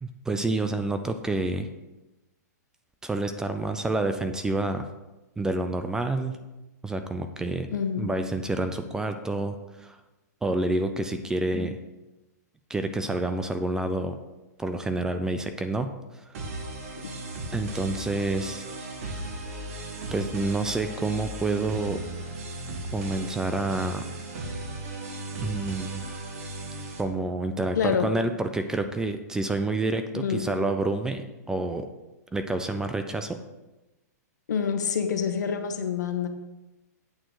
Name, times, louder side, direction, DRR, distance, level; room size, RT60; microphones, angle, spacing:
voice 1, 0.0-1.7 3.0-4.8 5.4-6.4 6.8-7.7 8.0-10.0 10.4-11.8 12.7-14.2 14.6-16.4 17.5-18.7 20.1-22.0 22.9-24.1 25.4-26.2 27.0-31.9 32.3-33.4, right 2 dB, 5° right, 8 dB, 0.4 m, -28 dB
voice 2, 7.7-8.1 27.8-28.1 30.1-30.4 34.5-36.3, left 7 dB, 80° left, 7 dB, 1.1 m, -27 dB
sound 1, 16.3-27.0, right 2 dB, 55° right, 1.5 m, -36 dB
8.7 x 3.8 x 6.3 m, 1.0 s
hypercardioid pair, 145°, 9 cm